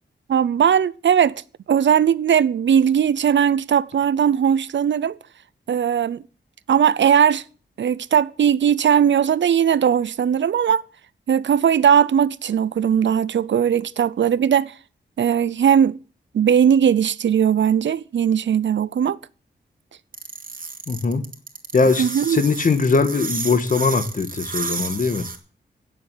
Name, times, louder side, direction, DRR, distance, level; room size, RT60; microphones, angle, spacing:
voice 1, 0.3-1.4 1.7-5.1 5.7-6.2 6.7-7.4 7.8-10.8 11.3-14.7 15.2-16.0 16.3-19.2 22.0-22.4, right 8 dB, 85° right, 0.7 m, -18 dB
sound 1, 20.1-25.4, right 5 dB, 50° right, 2.5 m, -31 dB
voice 2, 20.9-21.2 21.7-25.3, left 4 dB, 45° left, 1.7 m, -20 dB
16.5 x 7.7 x 8.5 m
wide cardioid pair, 160°, 19 cm